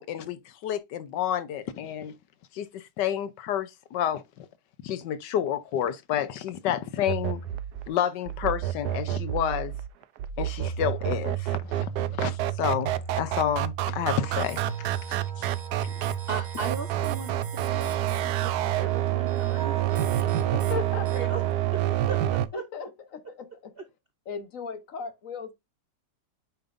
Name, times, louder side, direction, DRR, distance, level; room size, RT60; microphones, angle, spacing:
voice 1, 0.0-2.2 2.5-4.5 4.8-7.4 7.9-9.7 10.4-14.9 15.4-15.5 15.8-15.9, left 10 dB, 75° left, 1.3 m, -30 dB
sound 1, 7.1-22.5, right 13 dB, 70° right, 1.0 m, -28 dB
sound 2, 14.0-21.5, right 5 dB, 30° right, 1.2 m, -43 dB
voice 2, 16.3-20.6 21.1-21.4 22.1-22.6, right 4 dB, 50° right, 0.7 m, -38 dB
voice 3, 20.5-21.1 22.5-23.7 24.3-25.5, left 5 dB, 50° left, 1.2 m, -37 dB
8.9 x 5.2 x 2.5 m
omnidirectional pair, 2.0 m